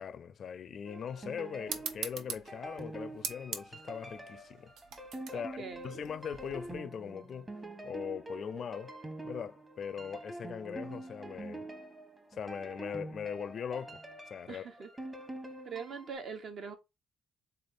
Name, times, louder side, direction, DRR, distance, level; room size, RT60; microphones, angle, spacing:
voice 1, 0.0-4.7 5.3-7.5 7.8-8.9 9.2-11.7 12.3-14.0 14.3-14.7, left 7 dB, 55° left, 0.4 m, -40 dB
sound 1, 0.9-16.1, right 1 dB, 20° right, 1.2 m, -46 dB
sound 2, 1.7-6.7, right 6 dB, 85° right, 0.8 m, -43 dB
voice 2, 5.3-6.0 14.5-14.9 15.6-16.8, right 5 dB, 60° right, 1.2 m, -43 dB
3.8 x 3.3 x 4.0 m
cardioid pair, 90°, 0 cm